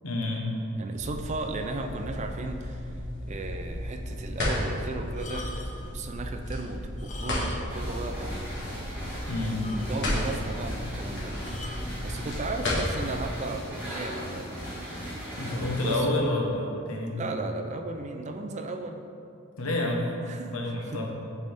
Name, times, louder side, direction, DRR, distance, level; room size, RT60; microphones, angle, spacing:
voice 1, 0.0-0.5 9.3-9.7 15.4-17.2 19.6-20.1 20.5-21.1, left 1 dB, 75° left, -1 dB, 1.0 m, -28 dB
voice 2, 0.7-2.9 3.3-5.5 5.9-8.7 9.9-11.4 12.0-14.8 15.5-16.1 17.1-19.0 20.2-21.0, right 3 dB, 30° right, 5 dB, 0.4 m, -36 dB
sound 1, 0.9-13.2, left 1 dB, 55° left, 1.3 m, -34 dB
sound 2, 5.1-5.9 6.9-7.9 8.1-8.3 8.8-8.9 9.1-9.2 9.6-10.3 11.4-11.9 12.7-13.0, left 2 dB, 35° left, 0.5 m, -43 dB
sound 3, 7.7-16.0, equal, 10° right, 1.4 m, -38 dB
8.1 x 4.1 x 3.4 m, 2.6 s
head